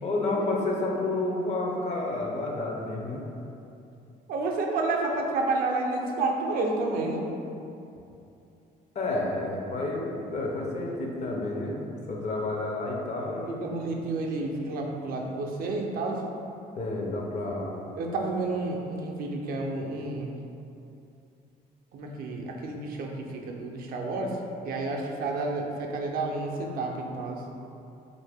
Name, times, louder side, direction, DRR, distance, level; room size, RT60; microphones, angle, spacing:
voice 1, 0.0-3.2 9.0-13.6 16.8-17.7, left 2 dB, 40° left, -1 dB, 0.5 m, -30 dB
voice 2, 4.3-7.3 13.5-16.2 18.0-20.3 21.9-24.4 24.6-27.4, right 3 dB, 60° right, 0 dB, 0.4 m, -30 dB
2.7 x 2.5 x 3.4 m, 2.7 s
cardioid pair, 110°, 17 cm